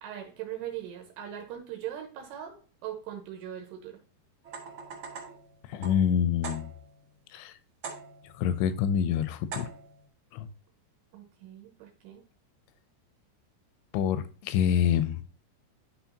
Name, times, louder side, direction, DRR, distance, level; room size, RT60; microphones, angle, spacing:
voice 1, 0.0-4.0 11.1-12.2, right 11 dB, 80° right, 2 dB, 3.0 m, -40 dB
sound 1, 4.4-7.1 7.8-8.4 9.5-10.1, right 5 dB, 50° right, 1.6 m, -43 dB
voice 2, 5.7-6.7 7.3-7.5 8.4-9.7 10.3-10.5 13.9-15.2, left 9 dB, 85° left, 13 dB, 2.9 m, -26 dB
12.0 x 4.0 x 2.8 m, 0.39 s
omnidirectional pair, 5.2 m